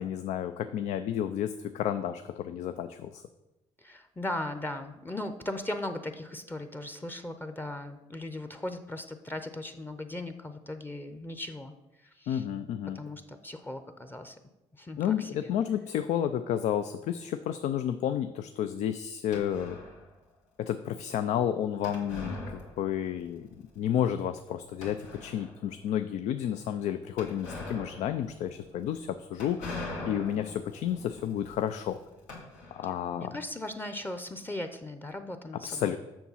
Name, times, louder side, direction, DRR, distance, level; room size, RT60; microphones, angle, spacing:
voice 1, 0.0-3.2 12.3-13.0 15.0-19.8 20.6-23.5 23.8-29.7 30.0-32.0 32.7-33.4 35.5-36.0, left 10 dB, 75° left, 10 dB, 0.4 m, -31 dB
voice 2, 3.8-11.7 12.2-12.4 12.9-14.3 14.8-15.5 33.1-36.0, left 1 dB, 15° left, 8 dB, 0.7 m, -38 dB
sound 1, 19.3-20.1 21.8-23.2 23.5-23.6 24.2-24.3 24.8-25.7 27.2-33.1, left 2 dB, 90° left, 2.1 m, -42 dB
6.9 x 6.2 x 5.6 m, 1.0 s
supercardioid pair, 75°, 12 cm